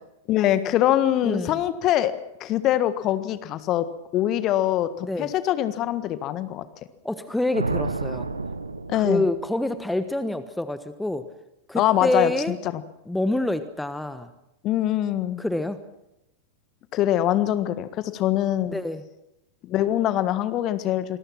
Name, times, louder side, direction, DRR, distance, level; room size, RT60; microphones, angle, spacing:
voice 1, 0.3-2.1 2.4-3.9 4.1-6.6 8.9-9.3 11.7-12.8 14.6-15.4 16.9-18.8 19.6-21.2, left 12 dB, 35° left, 13 dB, 1.6 m, -23 dB
voice 2, 1.2-1.6 5.0-5.3 7.0-8.3 8.9-11.3 11.7-12.6 13.1-14.3 15.4-15.8 18.7-19.0, left 1 dB, 5° left, 12 dB, 1.3 m, -27 dB
sound 1, 7.5-9.8, right 3 dB, 80° right, 1.3 m, -30 dB
27.5 x 21.0 x 6.0 m, 0.85 s
figure-of-eight pair, 90°, 0 cm